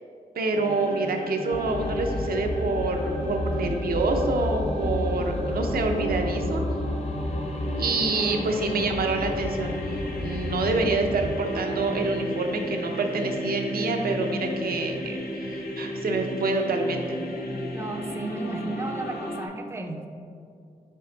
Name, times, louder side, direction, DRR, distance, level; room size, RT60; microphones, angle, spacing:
voice 1, 0.3-6.6 7.8-17.2, right 3 dB, 80° right, 3 dB, 0.7 m, -27 dB
sound 1, 0.5-19.5, left 1 dB, 85° left, 0.8 m, -34 dB
sound 2, 1.5-11.4, left 1 dB, 45° left, 0.6 m, -32 dB
voice 2, 8.0-8.6 17.7-20.1, right 2 dB, 15° right, 4 dB, 0.5 m, -34 dB
5.5 x 4.9 x 3.9 m, 2.4 s
cardioid pair, 75°, 15 cm